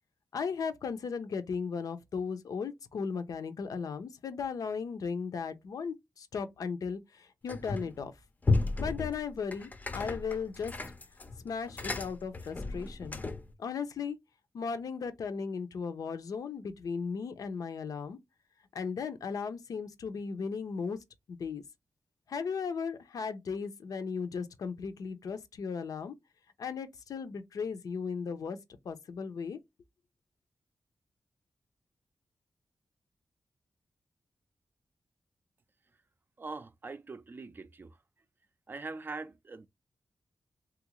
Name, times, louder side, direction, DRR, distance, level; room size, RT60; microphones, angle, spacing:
voice 1, 0.3-8.1 8.8-10.7 11.4-13.2 13.6-14.2 14.5-18.2 18.7-21.0 21.3-21.6 22.3-26.1 26.6-28.6 28.8-29.6, left 5 dB, 80° left, 0.5 m, -36 dB
sound 1, 7.5-8.0 8.4-13.5, left 3 dB, 25° left, 0.5 m, -33 dB
voice 2, 36.4-38.0 38.7-39.7, right 3 dB, 35° right, 0.3 m, -42 dB
3.4 x 2.4 x 3.0 m
wide cardioid pair, 120°, 6 cm